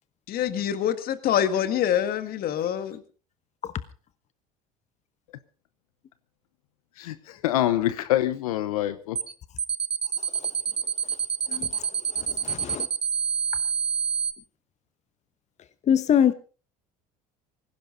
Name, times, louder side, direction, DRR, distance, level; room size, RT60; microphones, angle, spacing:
voice 1, 0.3-3.0, left 10 dB, 55° left, 1.9 m, -25 dB
voice 2, 7.0-9.2, left 13 dB, 90° left, 1.0 m, -25 dB
sound 1, 9.2-9.3 9.6-14.3, right 7 dB, 30° right, 1.3 m, -27 dB
voice 3, 11.5-11.9 12.1-12.9 15.9-16.3, left 9 dB, 40° left, 1.0 m, -23 dB
18.5 x 16.0 x 4.0 m
supercardioid pair, 90°, 18 cm